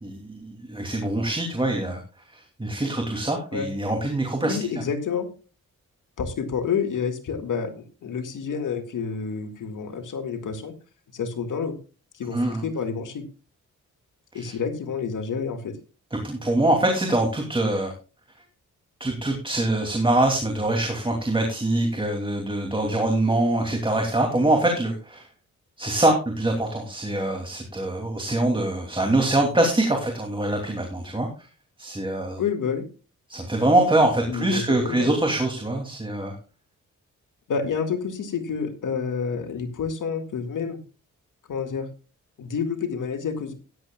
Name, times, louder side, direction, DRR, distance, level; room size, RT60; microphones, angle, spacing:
voice 1, 0.0-2.0 2.3-4.6 12.3-12.7 14.3-14.6 16.1-17.9 19.0-25.3 25.8-31.3 31.8-32.4 33.3-36.4, right 1 dB, 15° right, 2 dB, 2.8 m, -24 dB
voice 2, 4.4-5.3 6.2-10.7 11.1-11.8 12.2-13.2 14.3-15.7 32.4-32.8 34.3-35.1 37.5-40.8 41.5-41.9 42.4-43.5, left 6 dB, 80° left, 6 dB, 2.1 m, -29 dB
16.5 x 10.5 x 2.3 m, 0.34 s
cardioid pair, 90°, 31 cm